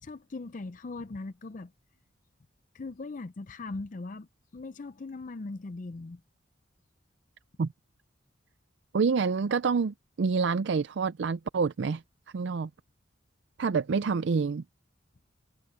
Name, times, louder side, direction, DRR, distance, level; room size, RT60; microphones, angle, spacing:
voice 1, 0.0-1.7 2.7-6.2, left 3 dB, 40° left, 0.5 m, -40 dB
voice 2, 8.9-12.0 12.3-12.7 13.6-14.6, right 5 dB, 60° right, 0.4 m, -27 dB
head